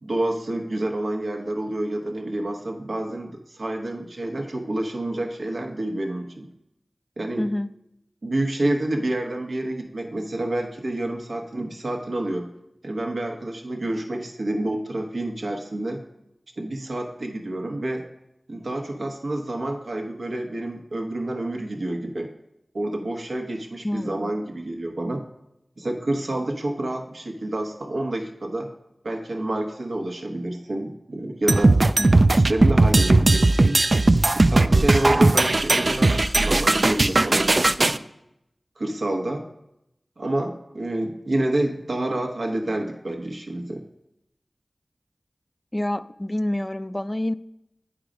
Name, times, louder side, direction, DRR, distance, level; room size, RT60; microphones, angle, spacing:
voice 1, 0.0-6.5 7.2-7.5 8.2-12.5 12.8-16.0 16.6-18.0 18.5-22.3 22.7-25.2 25.8-28.7 29.0-31.8 32.3-33.8 34.3-38.0 38.8-39.4 40.2-43.8, right 1 dB, 85° right, 2 dB, 1.2 m, -28 dB
voice 2, 7.4-7.7 23.8-24.3 32.0-32.3 45.7-47.3, left 1 dB, 25° left, 14 dB, 0.4 m, -27 dB
sound 1, 31.5-38.0, right 2 dB, 55° right, 0.3 m, -18 dB
9.0 x 4.8 x 5.1 m, 0.84 s
wide cardioid pair, 45°, 0 cm